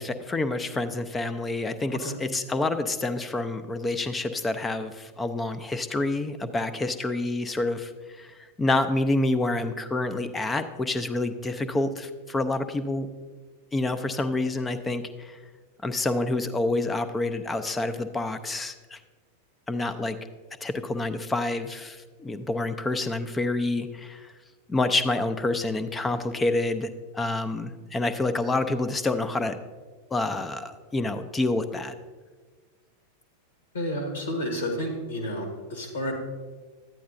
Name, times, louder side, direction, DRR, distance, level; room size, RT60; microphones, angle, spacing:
voice 1, 0.0-7.9 8.2-8.3 8.6-13.1 13.7-15.4 15.8-19.0 19.7-20.2 20.6-24.3 24.7-26.9 27.1-29.6 30.1-31.9, left 2 dB, 15° left, 11 dB, 0.5 m, -28 dB
voice 2, 33.7-36.1, equal, 70° left, 3 dB, 1.4 m, -30 dB
12.0 x 9.4 x 2.6 m, 1.4 s
figure-of-eight pair, 90°, 0 cm